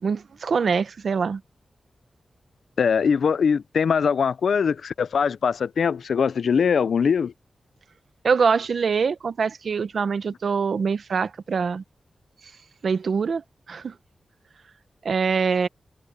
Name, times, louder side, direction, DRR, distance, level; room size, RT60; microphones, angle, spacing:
voice 1, 0.0-1.4 8.2-11.8 12.8-13.4 13.7-13.9 15.0-15.7, right 5 dB, 70° right, 0.8 m, -24 dB
voice 2, 2.8-7.3, left 6 dB, 85° left, 0.5 m, -22 dB
wide cardioid pair, 135°, 0 cm